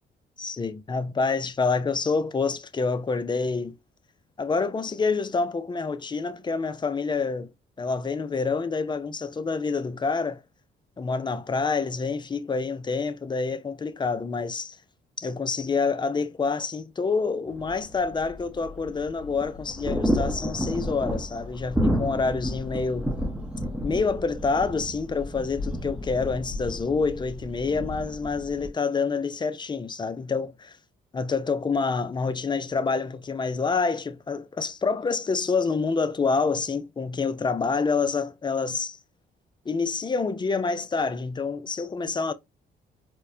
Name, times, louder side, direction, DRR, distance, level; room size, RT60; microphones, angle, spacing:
voice 1, 0.4-3.7 4.4-7.5 7.8-10.4 11.0-14.8 15.2-23.1 23.8-30.8 31.1-39.0 39.7-42.3, left 4 dB, 25° left, 0.4 m, -27 dB
sound 1, 17.5-28.7, equal, 5° right, 0.8 m, -31 dB
4.5 x 2.1 x 2.6 m
cardioid pair, 90°, 20 cm